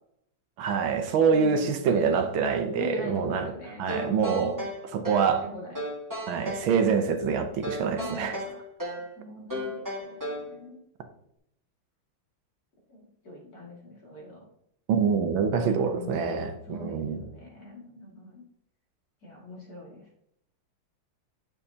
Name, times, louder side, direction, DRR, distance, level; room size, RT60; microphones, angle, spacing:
voice 1, 0.6-3.5 3.8-4.6 4.9-5.5 6.3-8.4 14.9-17.2, right 6 dB, 90° right, 1.7 m, -25 dB
voice 2, 1.3-1.8 2.8-4.6 5.0-5.8 7.9-8.6 9.2-10.8 12.9-14.5 15.6-18.4 19.2-20.0, equal, 50° left, 2.7 m, -41 dB
sound 1, 3.9-5.3 5.7-6.7 7.6-9.1 9.5-10.5, equal, 10° right, 1.5 m, -34 dB
9.2 x 6.7 x 2.8 m
omnidirectional pair, 2.1 m